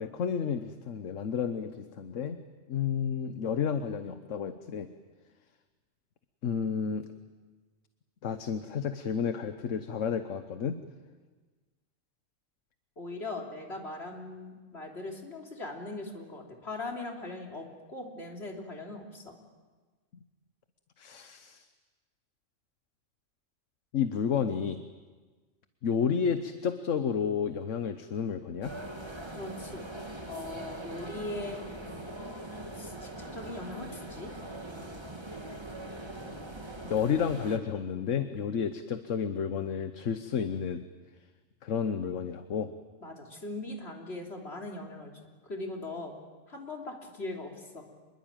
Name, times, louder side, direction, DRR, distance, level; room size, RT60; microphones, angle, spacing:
voice 1, 0.0-2.4 2.7-4.9 6.4-7.0 8.2-10.8 21.0-21.7 23.9-24.8 25.8-28.7 36.8-40.8 41.6-42.7, left 7 dB, 75° left, 9 dB, 1.3 m, -31 dB
voice 2, 13.0-19.3 29.2-29.8 30.3-31.6 32.8-34.3 43.0-45.1 45.4-46.1 46.5-47.8, left 2 dB, 55° left, 1 dB, 3.6 m, -40 dB
sound 1, 28.6-37.6, right 1 dB, 20° right, 1.9 m, -42 dB
26.0 x 22.0 x 9.0 m, 1.3 s
omnidirectional pair, 1.3 m